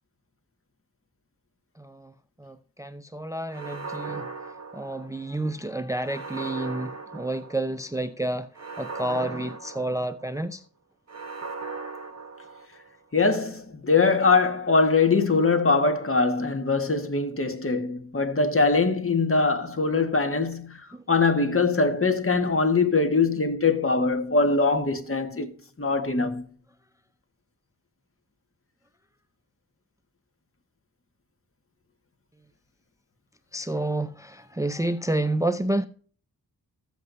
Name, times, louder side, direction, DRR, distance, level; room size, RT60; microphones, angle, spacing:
voice 1, 2.4-4.2 4.7-8.5 8.8-10.6 33.5-35.9, right 1 dB, 10° right, 0.6 m, -29 dB
sound 1, 3.5-5.4 6.0-7.8 8.5-10.4 11.1-13.0, right 4 dB, 45° right, 1.4 m, -38 dB
voice 2, 13.1-20.8 21.1-25.5 25.8-26.4, left 4 dB, 35° left, 1.7 m, -22 dB
14.5 x 8.0 x 2.7 m
wide cardioid pair, 70°, 36 cm